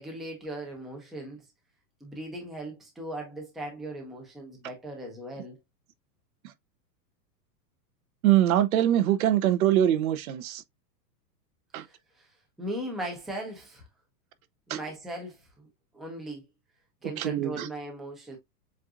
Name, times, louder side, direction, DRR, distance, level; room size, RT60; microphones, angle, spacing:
voice 1, 0.0-1.4 2.0-5.6 11.7-12.3 12.6-13.8 14.7-15.7 15.9-16.4 17.0-18.4, right 1 dB, ahead, 0.5 m, -38 dB
voice 2, 8.2-10.6 11.7-11.9 14.7-14.8 17.2-17.7, right 12 dB, 60° right, 0.8 m, -23 dB
7.6 x 2.5 x 2.4 m
supercardioid pair, 160°, 48 cm